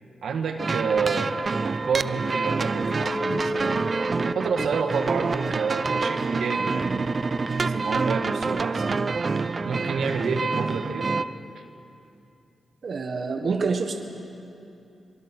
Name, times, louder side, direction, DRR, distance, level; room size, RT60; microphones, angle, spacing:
voice 1, 0.2-1.3 1.6-3.9 4.2-9.0 9.6-11.1 11.5-11.6, right 5 dB, 80° right, 4 dB, 1.7 m, -29 dB
sound 1, 0.6-11.2, right 4 dB, 40° right, 0.6 m, -27 dB
Chink clink, 2.9-7.4, equal, 35° left, 4.3 m, -35 dB
voice 2, 12.8-13.9, right 4 dB, 55° right, 4 dB, 1.4 m, -26 dB
24.5 x 23.0 x 6.2 m, 2.8 s
cardioid pair, 85°, 0 cm